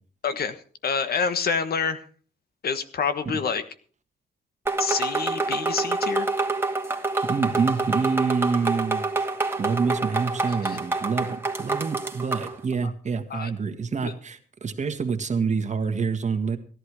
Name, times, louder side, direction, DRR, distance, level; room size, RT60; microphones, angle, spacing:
voice 1, 0.2-0.6 0.8-2.0 2.6-3.6 4.8-6.3 10.6-10.8 13.3-13.5 14.0-14.1, left 5 dB, 60° left, 11 dB, 1.4 m, -27 dB
sound 1, 4.7-12.6, right 3 dB, 15° right, 2.1 m, -27 dB
voice 2, 7.2-9.1 9.6-16.6, right 5 dB, 40° right, 7 dB, 1.8 m, -27 dB
16.5 x 11.0 x 4.9 m, 0.42 s
cardioid pair, 90°, 18 cm